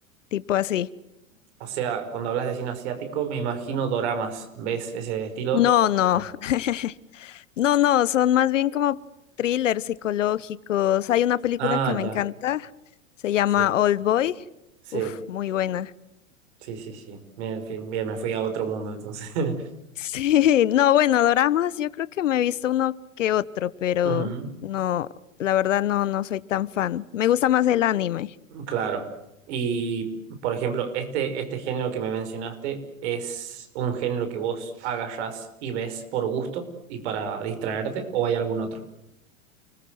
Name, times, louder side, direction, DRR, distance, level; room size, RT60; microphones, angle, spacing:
voice 1, 0.3-0.9 5.5-9.0 9.4-12.7 13.2-14.4 14.9-15.0 15.3-15.9 20.0-24.3 24.6-25.1 25.4-28.3, left 12 dB, 70° left, 1.1 m, -23 dB
voice 2, 1.6-5.6 6.1-6.2 11.6-12.2 13.6-13.7 14.9-15.2 16.6-19.6 24.0-24.5 28.5-29.1 29.5-30.1 30.4-38.8, right 7 dB, 55° right, 5.5 m, -29 dB
29.5 x 21.0 x 7.8 m
figure-of-eight pair, 95°, 39 cm